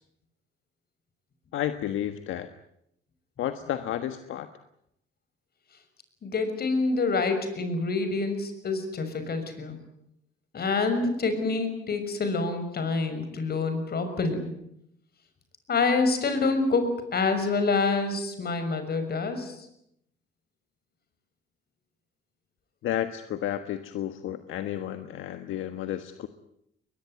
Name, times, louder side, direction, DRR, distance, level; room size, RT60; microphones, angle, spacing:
voice 1, 1.5-2.5 3.4-4.5 22.8-26.3, left 11 dB, 85° left, 9 dB, 1.4 m, -32 dB
voice 2, 6.2-9.8 10.5-14.5 15.7-19.6, left 3 dB, 50° left, 8 dB, 6.3 m, -27 dB
22.0 x 22.0 x 9.5 m, 0.76 s
cardioid pair, 90°, 20 cm